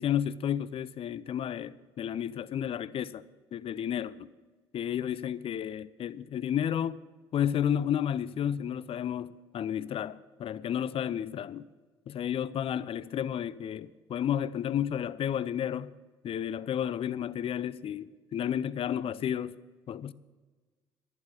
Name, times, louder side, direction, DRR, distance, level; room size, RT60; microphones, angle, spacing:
voice 1, 0.0-3.2 3.5-4.3 4.7-7.0 7.3-11.6 12.1-15.9 16.2-19.6 19.9-20.1, left 9 dB, 40° left, 0.5 m, -32 dB
11.5 x 11.0 x 5.6 m
hypercardioid pair, 60°, 14 cm